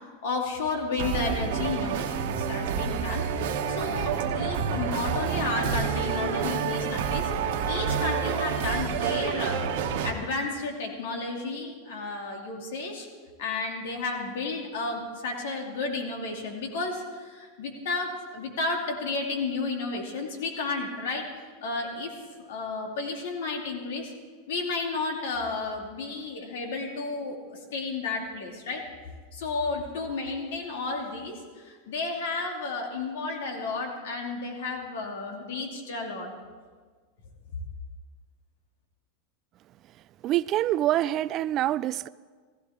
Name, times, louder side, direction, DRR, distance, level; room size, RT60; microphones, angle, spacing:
voice 1, 0.0-9.7 10.0-13.1 13.4-21.2 21.6-22.1 22.4-24.1 24.5-28.8 29.3-36.3, left 3 dB, 75° left, 2.6 m, -32 dB
sound 1, 1.0-10.1, right 6 dB, 70° right, 1.3 m, -28 dB
voice 2, 40.2-42.1, right 13 dB, 40° right, 0.3 m, -25 dB
16.0 x 15.5 x 3.7 m
hypercardioid pair, 115°, 0 cm